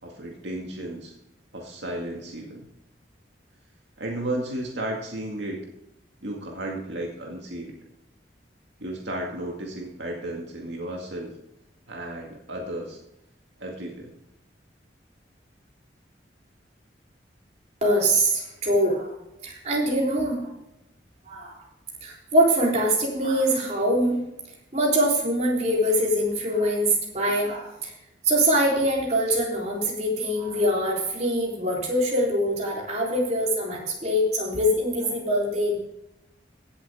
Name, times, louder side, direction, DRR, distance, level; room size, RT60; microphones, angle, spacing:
voice 1, 0.0-1.1 1.5-2.7 4.0-5.7 6.2-7.7 8.8-11.3 11.9-13.0 13.6-14.1, right 1 dB, 75° right, 0 dB, 2.1 m, -33 dB
voice 2, 17.8-19.1 19.4-20.5 21.3-21.6 22.0-24.2 24.7-27.9 28.2-35.8, equal, 40° right, -3 dB, 3.8 m, -23 dB
16.5 x 7.7 x 3.6 m, 0.86 s
head